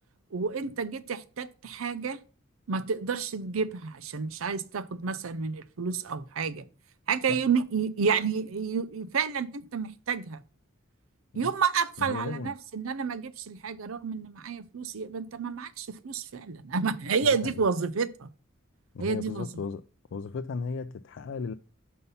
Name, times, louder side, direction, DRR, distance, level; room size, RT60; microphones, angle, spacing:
voice 1, 0.3-2.2 2.7-6.7 7.1-10.4 11.4-18.3 19.0-19.5, right 5 dB, 90° right, 0.6 m, -30 dB
voice 2, 12.0-12.5 17.2-17.6 18.9-19.8 20.1-21.5, left 5 dB, 65° left, 0.4 m, -35 dB
5.6 x 5.5 x 5.5 m
head